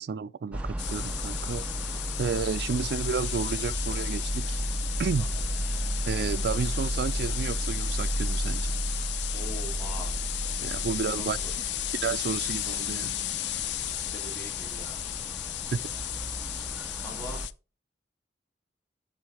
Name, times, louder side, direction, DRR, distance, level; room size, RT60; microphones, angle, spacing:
voice 1, 0.0-1.7 2.2-4.6 5.0-5.3 6.1-8.7 10.6-11.4 12.0-13.2 15.7-15.9, right 5 dB, 65° right, 0.3 m, -31 dB
sound 1, 0.5-17.5, right 1 dB, 5° right, 0.6 m, -33 dB
sound 2, 0.8-17.5, left 14 dB, 75° left, 0.4 m, -34 dB
voice 2, 9.3-10.2 11.2-11.5 13.9-15.0 17.0-17.4, equal, 10° left, 2.8 m, -43 dB
6.5 x 6.3 x 4.8 m
head